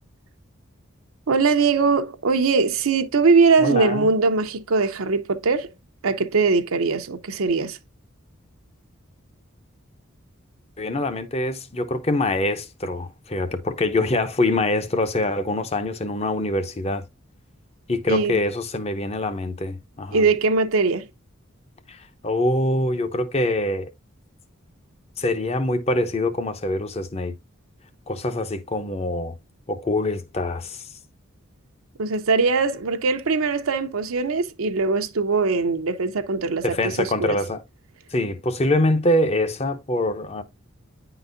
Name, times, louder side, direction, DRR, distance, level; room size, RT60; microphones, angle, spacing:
voice 1, 1.3-5.7 6.0-7.8 18.1-18.4 20.1-21.1 32.0-37.4, right 4 dB, 90° right, 0.7 m, -21 dB
voice 2, 3.6-4.1 10.8-17.1 17.9-20.2 21.9-23.9 25.2-27.3 28.1-29.4 29.7-30.9 36.6-37.6 38.1-40.4, left 1 dB, 30° left, 0.6 m, -24 dB
9.8 x 3.9 x 2.5 m
head